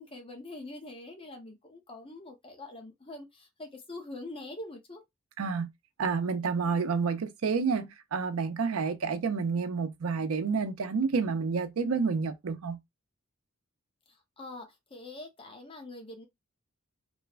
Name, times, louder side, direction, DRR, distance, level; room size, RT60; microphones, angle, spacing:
voice 1, 0.0-5.0 14.1-16.3, left 2 dB, 25° left, 0.7 m, -44 dB
voice 2, 5.4-5.7 6.0-12.8, right 5 dB, 85° right, 0.5 m, -29 dB
3.1 x 2.1 x 2.3 m
head